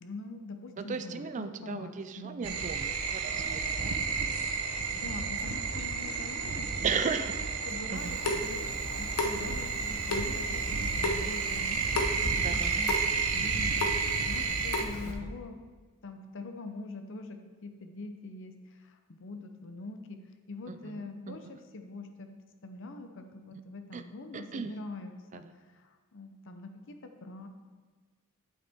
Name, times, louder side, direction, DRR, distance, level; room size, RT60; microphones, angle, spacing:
voice 1, 0.0-2.6 4.6-6.7 7.7-15.6 16.0-20.2 20.5-22.3 22.6-25.5 25.8-27.5, left 3 dB, 60° left, 6 dB, 0.8 m, -44 dB
voice 2, 0.8-4.0 6.8-7.3 7.9-8.2 12.4-12.8 15.0-15.3 20.7-21.6 23.9-24.0 24.3-24.8 25.3-25.5, right 5 dB, 35° right, 10 dB, 0.3 m, -36 dB
sound 1, 2.4-14.8, right 5 dB, 80° right, 0.9 m, -32 dB
Water tap faucet / Sink (filling or washing) / Drip, 8.0-15.1, left 2 dB, 85° left, 1.1 m, -35 dB
8.8 x 8.0 x 3.6 m, 1.4 s
head